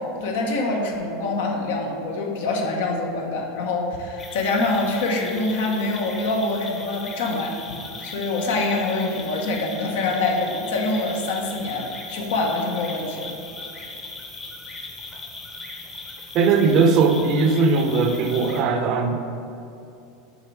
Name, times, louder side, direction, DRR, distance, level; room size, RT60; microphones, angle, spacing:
voice 1, 0.2-7.5 8.0-13.3, left 2 dB, 80° left, 1 dB, 0.9 m, -25 dB
sound 1, 4.2-18.6, left 3 dB, 20° left, 0.8 m, -38 dB
voice 2, 16.3-19.2, right 4 dB, 45° right, 6 dB, 0.6 m, -19 dB
6.4 x 4.1 x 4.6 m, 2.6 s
supercardioid pair, 150°, 0 cm